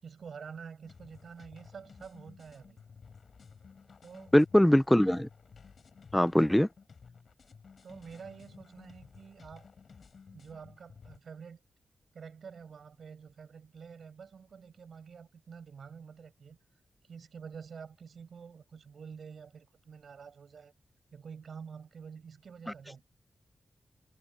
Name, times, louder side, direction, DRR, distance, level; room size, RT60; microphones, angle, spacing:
voice 1, 0.0-2.8 4.0-4.4 7.8-9.7 10.3-11.6 12.1-16.6 17.0-20.7 21.1-23.0, right 6 dB, 65° right, 7.2 m, -48 dB
sound 1, 0.8-11.2, left 5 dB, 55° left, 7.4 m, -55 dB
voice 2, 4.3-5.3 6.1-6.7, left 1 dB, 5° left, 0.3 m, -22 dB
wide cardioid pair, 165°, 0 cm